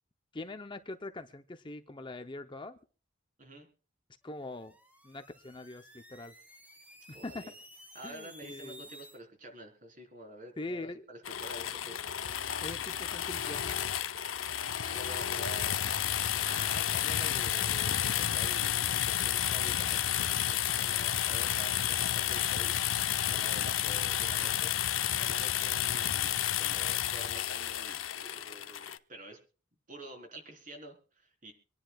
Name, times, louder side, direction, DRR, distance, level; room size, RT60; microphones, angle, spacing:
voice 1, 0.3-2.8 4.2-4.7 5.0-6.3 7.1-7.4 8.0-8.9 10.6-11.1 12.6-13.8, left 2 dB, 25° left, 7 dB, 0.7 m, -42 dB
sound 1, 4.4-9.2, equal, 10° right, 1.6 m, -54 dB
voice 2, 7.1-7.5 7.9-12.0 14.7-15.8 16.4-24.7 25.1-29.4 29.9-31.5, right 1 dB, 40° right, 2 dB, 3.9 m, -48 dB
sound 2, 11.2-29.0, left 10 dB, 90° left, 0.7 m, -31 dB
26.0 x 10.5 x 2.3 m, 0.38 s
head